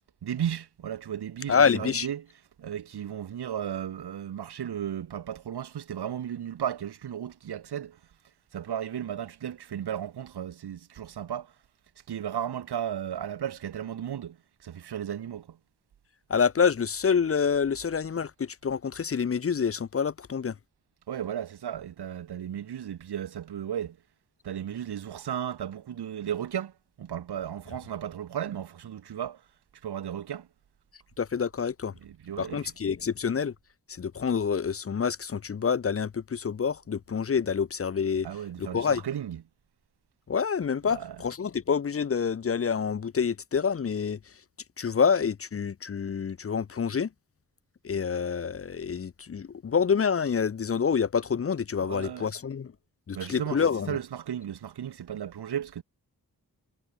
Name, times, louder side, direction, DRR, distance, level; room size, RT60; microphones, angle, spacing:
voice 1, 0.2-2.2 2.6-8.0 8.5-11.5 12.1-15.6 21.1-24.0 24.4-29.4 29.8-30.5 32.0-32.7 38.2-39.4 40.9-41.2 51.8-52.3 53.1-55.8, right 9 dB, 90° right, 0.8 m, -35 dB
voice 2, 1.5-2.1 16.3-20.5 31.2-31.9 32.4-33.5 33.9-38.3 38.6-39.0 40.3-44.2 44.8-47.1 47.8-52.7 53.1-54.0, left 6 dB, 40° left, 0.5 m, -27 dB
wide cardioid pair, 65°, 38 cm